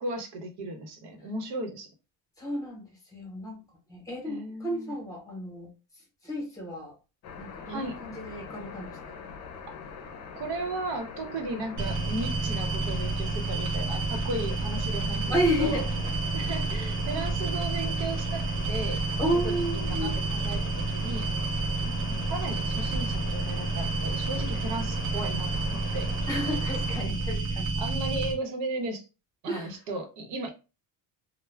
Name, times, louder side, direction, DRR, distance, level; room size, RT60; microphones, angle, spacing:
voice 1, 0.0-1.9 4.3-4.9 7.7-8.0 10.3-15.3 15.6-15.8 16.3-19.2 19.4-21.3 22.3-26.2 27.8-29.1 29.4-30.5, right 2 dB, 90° right, 0.9 m, -35 dB
voice 2, 2.4-3.6 3.9-5.7 6.2-7.0 7.4-9.0 15.3-16.0 16.3-16.4 17.1-17.2 19.2-20.1 21.8-22.2 26.3-27.8 29.5-29.8, equal, 10° left, 0.8 m, -32 dB
sound 1, 7.2-27.0, left 5 dB, 45° left, 0.5 m, -43 dB
sound 2, 11.8-28.3, right 3 dB, 50° right, 0.8 m, -30 dB
2.2 x 2.1 x 3.2 m
cardioid pair, 170°, 40 cm